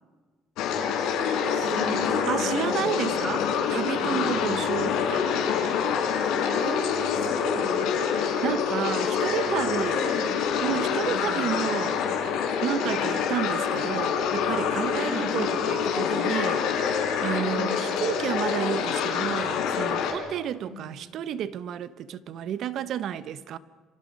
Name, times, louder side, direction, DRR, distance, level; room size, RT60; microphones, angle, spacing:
sound 1, 0.6-20.1, left 7 dB, 80° left, 4.5 m, -26 dB
voice 1, 1.5-3.0 4.0-4.4 6.5-7.9 9.1-10.4 11.1-11.4 15.0-15.4 17.5-17.9 20.6-20.9, left 1 dB, 40° right, 5.0 m, -37 dB
voice 2, 2.3-5.3 8.1-10.1 10.6-12.0 12.6-23.6, right 10 dB, 55° right, 1.0 m, -31 dB
29.0 x 26.0 x 5.4 m
cardioid pair, 145°, 0 cm